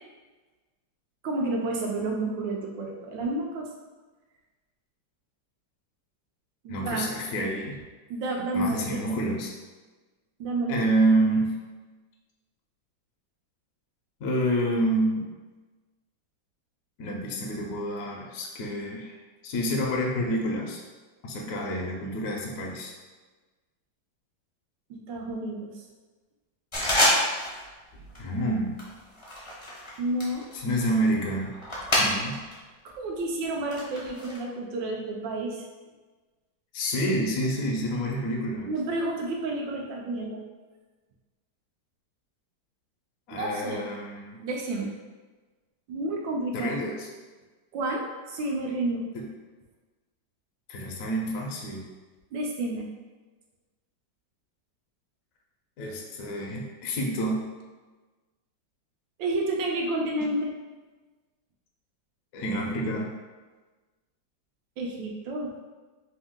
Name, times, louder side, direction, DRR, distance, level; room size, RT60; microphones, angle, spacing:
voice 1, 1.2-3.7 6.6-7.1 8.1-9.2 10.4-10.8 24.9-25.8 30.0-30.4 32.8-35.7 38.7-40.4 43.3-43.9 44.4-44.9 45.9-46.7 47.7-49.1 52.3-52.9 59.2-60.5 64.8-65.5, right 2 dB, 85° right, 0 dB, 1.3 m, -30 dB
voice 2, 6.7-7.8 8.5-9.5 10.7-11.5 14.2-15.3 17.0-19.2 19.4-20.8 21.2-22.9 28.2-28.8 30.5-31.5 32.0-32.4 36.7-38.7 43.3-44.4 46.5-47.1 49.1-49.3 50.7-51.8 55.8-57.4 62.3-63.1, right 1 dB, 65° left, -1 dB, 0.9 m, -28 dB
sound 1, 26.7-27.6 27.9-28.3 28.8-32.5 32.9-34.4, left 1 dB, 35° left, 0.4 m, -28 dB
3.4 x 2.7 x 3.6 m, 1.3 s
omnidirectional pair, 2.0 m